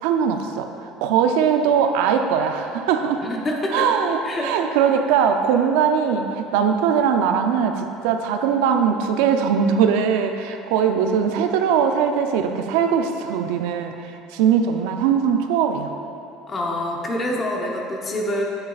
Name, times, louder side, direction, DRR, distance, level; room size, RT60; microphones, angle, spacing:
voice 1, 0.0-3.2 3.7-15.9, right 7 dB, 85° right, 5 dB, 0.5 m, -20 dB
voice 2, 3.2-3.9 4.2-4.5 16.5-18.4, left 1 dB, 25° left, -1 dB, 0.9 m, -26 dB
8.4 x 8.0 x 2.4 m, 2.8 s
cardioid pair, 150°, 0 cm